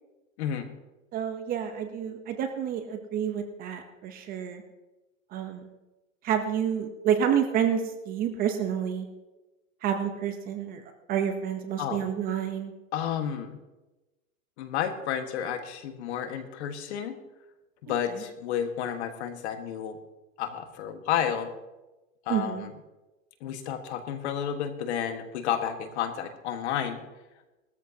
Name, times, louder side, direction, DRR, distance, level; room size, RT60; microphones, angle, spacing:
voice 1, 0.4-0.7 11.8-12.0 12.9-13.6 14.6-17.1 17.8-20.0 20.4-21.5 22.2-22.7 23.4-27.0, left 9 dB, 55° left, 7 dB, 1.6 m, -31 dB
voice 2, 1.1-4.6 5.3-5.7 6.2-9.1 9.8-10.8 11.1-12.7 17.9-18.2 22.3-22.6, right 8 dB, 20° right, 7 dB, 0.8 m, -29 dB
19.0 x 13.5 x 2.8 m, 1.1 s
supercardioid pair, 150°, 41 cm